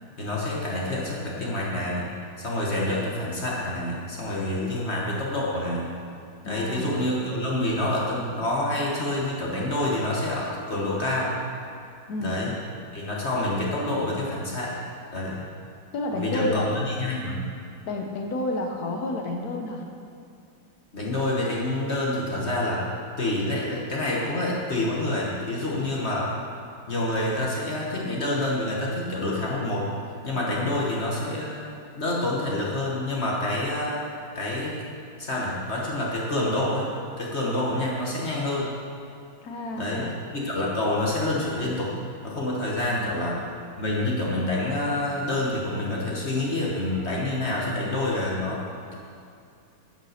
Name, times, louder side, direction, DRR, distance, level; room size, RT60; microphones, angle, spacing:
voice 1, 0.2-2.1 2.4-6.0 6.4-11.4 12.2-12.5 12.9-14.8 15.1-15.4 16.1-17.5 20.9-22.8 23.2-26.3 26.9-29.9 30.2-31.6 31.9-34.0 34.3-34.8 35.2-36.9 37.2-38.8 39.8-41.9 42.2-43.4 43.8-48.6, left 1 dB, 40° left, -4 dB, 1.2 m, -27 dB
voice 2, 6.4-6.9 12.1-12.4 15.9-16.7 17.9-19.9 30.5-30.7 39.4-40.1 42.9-43.3, left 2 dB, 60° left, 2 dB, 1.1 m, -30 dB
9.3 x 5.3 x 6.5 m, 2.5 s
omnidirectional pair, 2.3 m